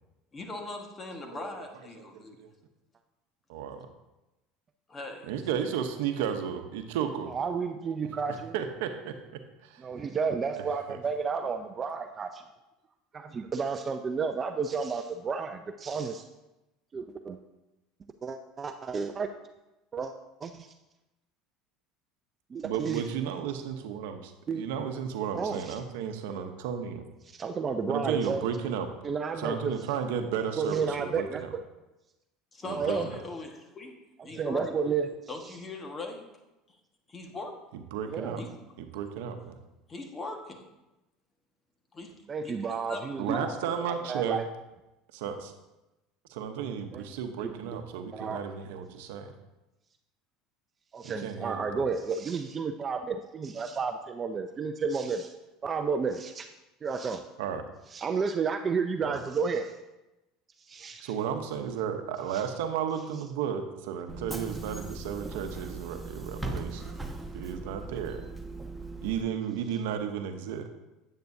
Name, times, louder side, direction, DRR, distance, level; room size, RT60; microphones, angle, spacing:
voice 1, 0.3-2.4 4.9-5.3 32.5-33.9 34.2-34.9 35.3-36.2 37.1-37.5 38.4-38.6 39.9-40.6 41.9-42.1 42.4-43.0 43.3-43.6, left 2 dB, 25° left, 3 dB, 1.5 m, -40 dB
voice 2, 2.0-2.5 3.5-3.9 5.3-7.3 8.5-9.2 9.6-9.8 10.9-11.0 22.6-27.1 27.9-28.9 29.4-31.5 32.7-33.2 37.7-38.4 38.8-39.6 43.2-44.4 45.1-45.5 46.3-49.3 51.0-51.8 57.4-57.6 59.0-59.2 61.0-66.9 67.3-68.2 69.0-70.7, right 8 dB, 80° right, 7 dB, 0.8 m, -33 dB
voice 3, 7.3-8.5 9.8-12.4 13.1-16.2 16.9-17.4 18.2-19.3 19.9-20.1 20.4-20.7 22.5-23.3 24.5-24.7 25.3-25.7 27.3-28.6 29.0-29.7 30.6-31.6 32.7-33.1 34.3-35.2 38.1-38.4 42.3-43.5 43.8-44.4 46.9-47.0 47.4-47.8 48.1-48.5 50.9-55.3 55.6-56.5 56.8-57.2 57.9-59.8 60.6-61.1 62.3-62.4, right 5 dB, 30° right, 7 dB, 0.5 m, -32 dB
Bus / Engine, 64.1-69.2, right 3 dB, 5° right, 1.0 m, -39 dB
9.3 x 8.9 x 2.7 m, 0.99 s
supercardioid pair, 100°, 0 cm